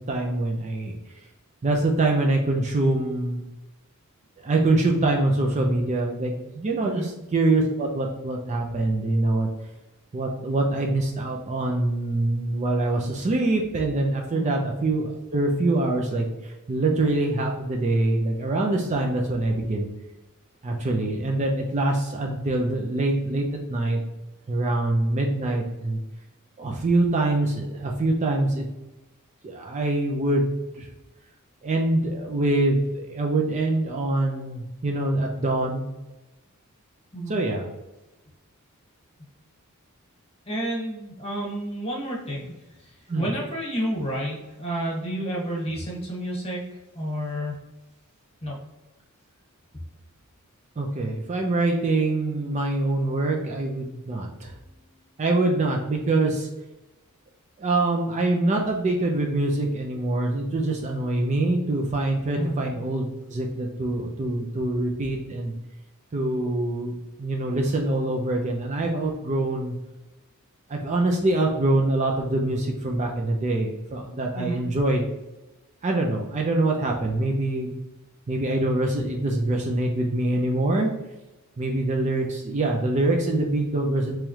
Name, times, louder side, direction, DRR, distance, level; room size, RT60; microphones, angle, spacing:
voice 1, 0.1-1.0 1.6-3.4 4.4-9.5 10.1-16.2 16.7-19.9 20.6-24.0 24.5-26.0 26.6-28.6 29.4-30.9 31.6-35.8 37.3-37.7 43.1-43.3 50.8-54.5 55.2-56.5 57.6-65.5 66.1-69.7 70.7-75.0 75.8-77.7 78.3-80.9 81.6-84.2, right 2 dB, 30° right, 1 dB, 0.4 m, -24 dB
voice 2, 40.5-42.5 43.1-46.6 46.9-47.5 48.4-48.6 62.3-62.6 74.3-74.6, right 1 dB, 25° left, -2 dB, 1.2 m, -30 dB
3.5 x 3.1 x 3.1 m, 1.0 s
head